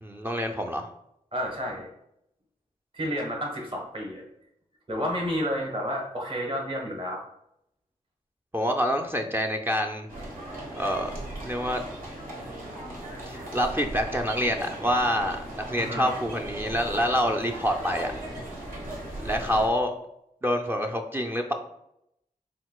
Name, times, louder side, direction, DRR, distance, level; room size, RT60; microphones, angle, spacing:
voice 1, 0.0-0.9 8.5-10.1 10.8-11.1 11.4-11.8 13.3-18.1 19.2-19.9 20.4-21.5, equal, 15° right, 3 dB, 0.5 m, -27 dB
voice 2, 1.3-1.9 2.9-4.2 4.9-7.2 15.7-16.1, equal, 35° right, -1 dB, 1.3 m, -30 dB
sound 1, 10.1-19.7, right 1 dB, 65° right, 1.2 m, -38 dB
4.5 x 3.7 x 2.3 m, 0.79 s
cardioid pair, 50°, 15 cm